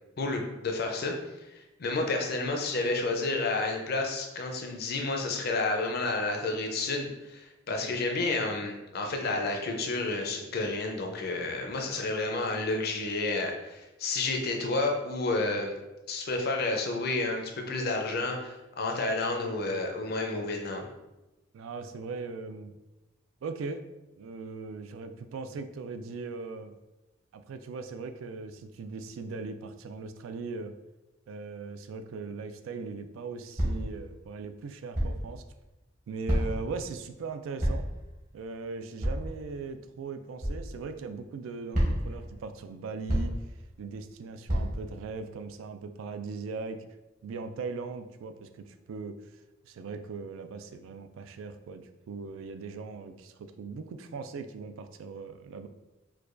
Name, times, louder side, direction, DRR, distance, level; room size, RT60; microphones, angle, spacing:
voice 1, 0.2-1.1 1.5-15.7 16.1-20.9, left 3 dB, 50° left, 2 dB, 0.5 m, -30 dB
voice 2, 7.7-8.0 21.5-22.7 23.4-23.8 24.2-26.7 27.3-30.7 31.3-35.4 36.1-37.9 38.3-43.4 43.8-46.8 47.2-49.2 49.6-55.7, right 4 dB, 80° right, 8 dB, 0.3 m, -39 dB
sound 1, 33.6-33.9 34.9-35.3 36.3-36.7 37.6-38.0 39.0-39.3 40.4-40.6 41.7-42.2 43.1-43.5 44.5-44.9, equal, 40° right, 0.9 m, -28 dB
4.6 x 2.2 x 2.5 m, 1.0 s
head